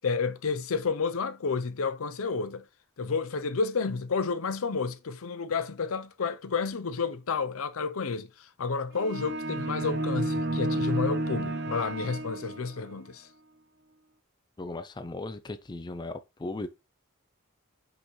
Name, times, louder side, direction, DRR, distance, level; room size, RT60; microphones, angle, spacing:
voice 1, 0.0-2.6 3.0-13.3, left 5 dB, 70° left, 0.6 m, -30 dB
sound 1, 9.0-12.9, right 1 dB, 50° right, 0.7 m, -31 dB
voice 2, 14.6-16.7, left 2 dB, 20° left, 0.4 m, -37 dB
5.9 x 5.3 x 3.1 m
head